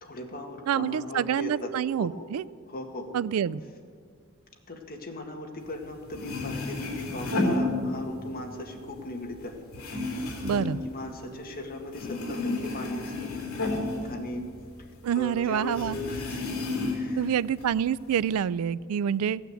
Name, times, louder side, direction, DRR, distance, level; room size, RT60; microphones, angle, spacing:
voice 1, 0.0-1.7 2.0-2.3 2.7-3.1 4.7-13.3 14.1-14.5 15.1-16.4 16.9-17.3, left 1 dB, 45° left, 2 dB, 1.9 m, -38 dB
voice 2, 0.7-2.4 3.1-3.6 10.4-10.8 15.0-16.0 17.2-19.4, right 8 dB, 85° right, 20 dB, 0.3 m, -27 dB
sound 1, 5.8-5.9 6.1-8.3 8.7-11.6 11.9-14.9 15.2-15.3 15.7-17.2 17.6-18.3, left 2 dB, 75° left, 3.4 m, -31 dB
16.0 x 9.3 x 7.9 m, 2.1 s
head